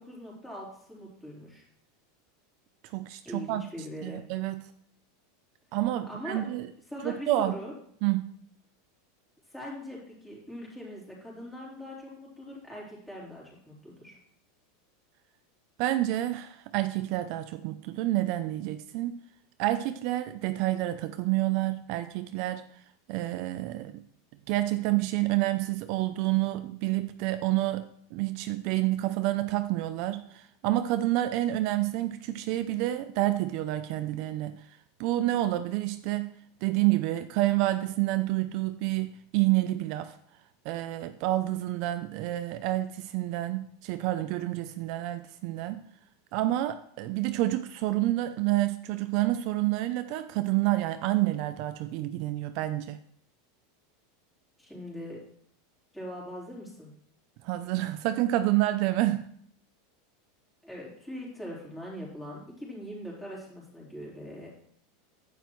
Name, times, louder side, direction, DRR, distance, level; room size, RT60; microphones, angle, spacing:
voice 1, 0.0-1.6 3.2-4.2 6.1-6.4 6.9-7.7 9.5-14.2 54.6-55.2 55.9-56.9 60.6-64.5, equal, 5° left, 4.0 m, -41 dB
voice 2, 2.8-3.6 4.0-4.7 5.7-6.7 7.0-7.5 8.0-8.3 15.8-19.2 19.6-22.6 23.1-24.0 24.5-34.7 35.0-36.4 36.6-40.1 40.6-45.8 46.3-53.0 57.4-59.2, right 16 dB, 50° right, 0.5 m, -28 dB
10.0 x 9.1 x 3.1 m
supercardioid pair, 145°, 0 cm